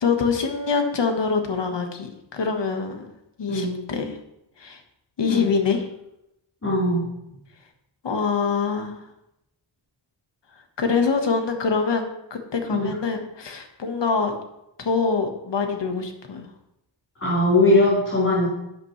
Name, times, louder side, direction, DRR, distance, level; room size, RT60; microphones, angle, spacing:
voice 1, 0.0-3.1 3.4-4.2 4.6-4.8 5.2-5.9 8.0-9.0 10.8-12.0 12.3-14.3 14.8-16.5, left 5 dB, 65° left, 5 dB, 1.5 m, -24 dB
voice 2, 6.6-7.1 12.7-12.9 17.2-18.5, left 1 dB, 30° left, -10 dB, 4.2 m, -20 dB
12.0 x 8.6 x 3.2 m, 0.85 s
wide cardioid pair, 140°, 47 cm